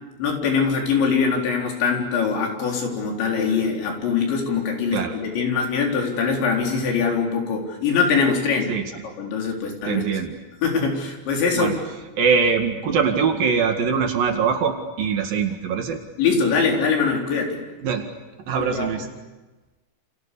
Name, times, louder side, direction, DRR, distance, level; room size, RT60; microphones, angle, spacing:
voice 1, 0.2-8.7 9.2-10.0 10.6-11.7 16.2-17.6 18.6-19.1, left 5 dB, 75° left, 1 dB, 6.4 m, -22 dB
voice 2, 9.8-10.3 11.5-11.7 12.2-16.0 17.8-18.1 18.5-19.1, right 6 dB, 60° right, 5 dB, 3.4 m, -22 dB
29.0 x 28.5 x 7.0 m, 1.1 s
omnidirectional pair, 5.2 m